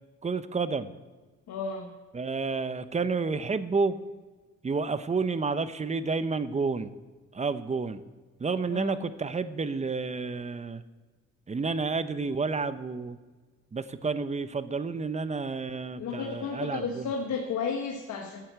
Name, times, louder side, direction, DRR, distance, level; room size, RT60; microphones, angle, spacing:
voice 1, 0.2-0.9 2.1-3.9 4.6-6.9 7.3-8.0 8.4-10.8 11.5-13.2 13.7-17.1, right 4 dB, 25° right, 13 dB, 0.6 m, -30 dB
voice 2, 1.5-1.9 8.7-9.0 16.0-18.4, left 5 dB, 70° left, 2 dB, 1.3 m, -33 dB
8.4 x 8.0 x 7.7 m, 1.3 s
cardioid pair, 90°, 30 cm